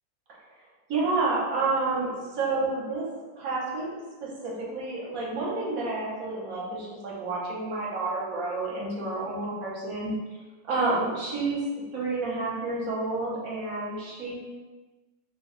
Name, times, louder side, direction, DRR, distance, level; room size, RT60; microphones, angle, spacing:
voice 1, 0.9-3.1 3.3-3.9 4.2-10.1 10.7-11.6 11.9-14.3, right 3 dB, 60° right, -5 dB, 1.1 m, -29 dB
3.0 x 2.2 x 3.7 m, 1.3 s
omnidirectional pair, 1.9 m